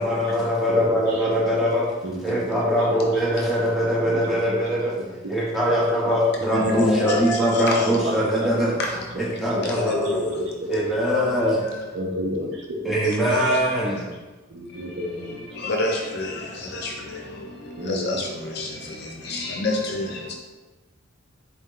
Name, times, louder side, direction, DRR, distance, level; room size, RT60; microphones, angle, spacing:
voice 1, 0.0-1.9 2.2-8.8 9.2-10.2 10.7-11.6 12.8-14.1, equal, ahead, -7 dB, 0.8 m, -22 dB
voice 2, 0.7-1.6 2.0-3.0 4.0-4.8 5.7-6.2 6.6-6.7 7.0-7.5 7.9-8.5 9.5-9.6 9.9-10.0 10.3-10.7 11.9-12.9 14.5-15.4 17.8-18.1, equal, 60° right, 0 dB, 0.6 m, -31 dB
voice 3, 6.5-7.9 8.8-8.9 9.7-10.3 11.1-11.2 13.0-13.4 15.6-17.2 17.9-18.7 19.2-20.3, left 2 dB, 55° left, 0 dB, 0.6 m, -27 dB
3.9 x 2.2 x 3.7 m, 1.2 s
head